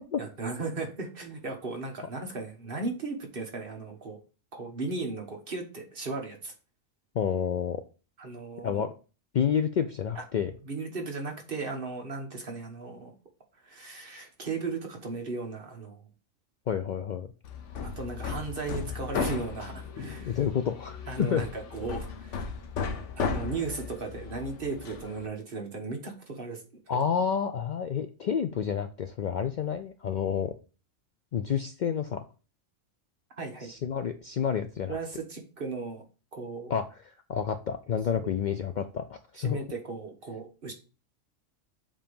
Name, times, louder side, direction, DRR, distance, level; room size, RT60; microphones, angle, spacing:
voice 1, 0.2-4.2 4.5-6.5 8.2-8.9 10.7-13.1 13.6-16.1 17.8-20.3 21.1-22.5 23.2-26.6 26.9-27.0 33.4-33.7 34.9-36.0 36.3-36.7 38.1-38.3 39.4-40.7, right 3 dB, 45° right, 3 dB, 1.4 m, -36 dB
voice 2, 7.1-7.8 8.6-8.9 9.3-10.5 16.7-17.3 20.2-21.4 26.9-30.5 31.3-32.2 33.6-35.0 36.7-39.6, left 7 dB, 90° left, 8 dB, 0.4 m, -29 dB
Hammer, 17.4-25.3, left 5 dB, 70° left, 1.1 m, -36 dB
7.4 x 2.9 x 5.2 m, 0.35 s
omnidirectional pair, 1.3 m